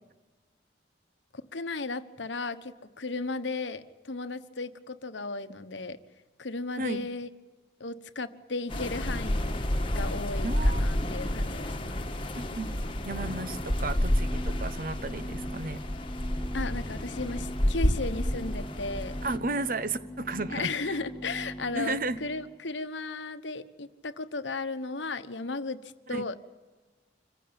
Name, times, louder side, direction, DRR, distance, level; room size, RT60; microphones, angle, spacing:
voice 1, 1.5-6.0 6.4-7.3 7.8-9.5 9.9-12.1 16.5-19.2 20.5-25.8 26.1-26.4, left 3 dB, 75° left, 11 dB, 1.2 m, -35 dB
sound 1, 8.7-19.4, left 1 dB, 30° left, 1.4 m, -30 dB
voice 2, 10.4-10.9 12.4-12.7 13.0-15.8 19.2-21.0 21.7-22.2 26.1-26.3, right 2 dB, 50° right, 13 dB, 1.0 m, -33 dB
sound 2, 12.9-22.6, equal, 5° left, 1.4 m, -42 dB
26.0 x 15.5 x 8.8 m, 1.3 s
head